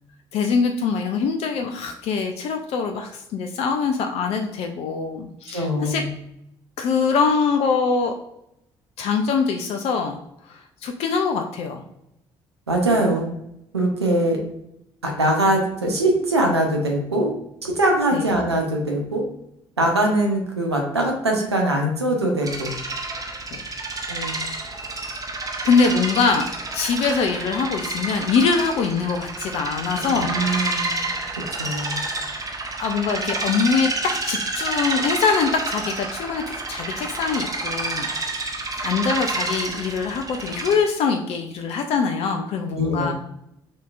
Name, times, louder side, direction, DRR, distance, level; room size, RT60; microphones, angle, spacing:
voice 1, 0.3-6.0 6.8-8.1 9.0-10.2 10.4-11.8 18.1-18.2 23.5-23.6 25.4-30.3 32.8-38.5 38.8-43.1, left 5 dB, 50° left, 4 dB, 0.4 m, -23 dB
voice 2, 5.5-6.1 12.7-13.3 13.7-14.4 15.0-17.3 17.6-19.2 19.8-22.8 24.1-24.4 30.0-31.0 31.6-32.0 42.7-43.1, right 1 dB, 85° right, 1 dB, 0.6 m, -22 dB
sound 1, 22.4-40.8, right 2 dB, 25° right, 0.8 m, -29 dB
6.1 x 2.8 x 2.4 m, 0.80 s
figure-of-eight pair, 45°, 14 cm